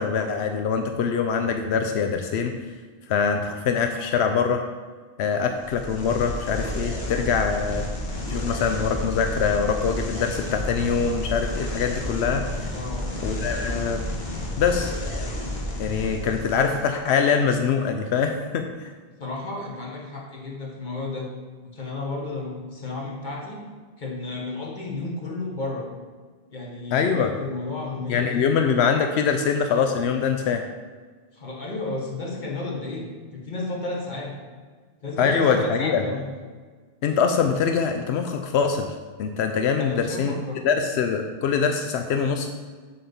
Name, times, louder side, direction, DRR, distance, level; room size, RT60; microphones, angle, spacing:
voice 1, 0.0-2.5 3.1-4.6 5.2-7.8 8.3-12.4 13.2-14.0 14.6-14.9 15.8-18.9 26.9-27.3 28.1-30.6 35.2-36.0 37.0-38.9 39.2-40.4 40.6-42.5, left 6 dB, 90° left, 5 dB, 0.9 m, -23 dB
sound 1, 5.5-17.0, left 1 dB, 70° left, 1.8 m, -31 dB
voice 2, 12.7-13.1 16.2-16.3 19.2-21.3 21.6-23.6 24.0-25.9 26.5-28.6 31.3-34.3 35.0-36.3 39.8-40.6, left 2 dB, 50° left, -2 dB, 1.6 m, -32 dB
7.5 x 4.3 x 6.9 m, 1.5 s
omnidirectional pair, 1.1 m